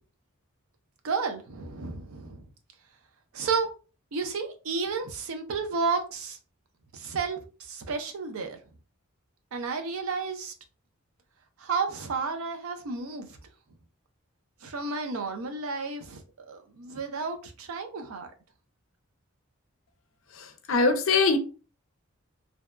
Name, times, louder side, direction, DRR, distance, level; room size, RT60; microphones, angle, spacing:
voice 1, 1.0-2.4 3.3-3.7 4.1-6.4 6.9-8.6 9.5-10.5 11.6-13.4 14.6-18.3, right 4 dB, 80° right, 0.5 m, -32 dB
voice 2, 20.4-21.4, left 4 dB, 65° left, 0.5 m, -23 dB
2.7 x 2.2 x 2.2 m
head